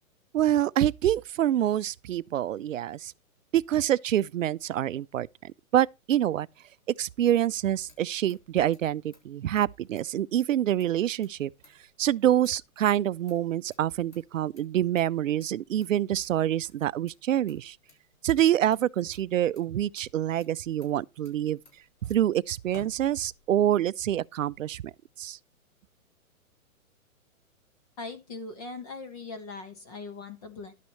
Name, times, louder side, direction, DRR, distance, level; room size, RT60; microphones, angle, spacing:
voice 1, 0.3-3.1 3.5-6.5 7.0-11.5 12.0-17.8 18.2-21.6 22.1-24.9 25.2-25.4, right 11 dB, 60° right, 0.5 m, -26 dB
Motor vehicle (road), 7.5-23.7, left 3 dB, 85° left, 6.4 m, -58 dB
voice 2, 28.0-30.7, left 3 dB, 25° left, 1.4 m, -40 dB
11.5 x 9.4 x 3.2 m
hypercardioid pair, 175°, 44 cm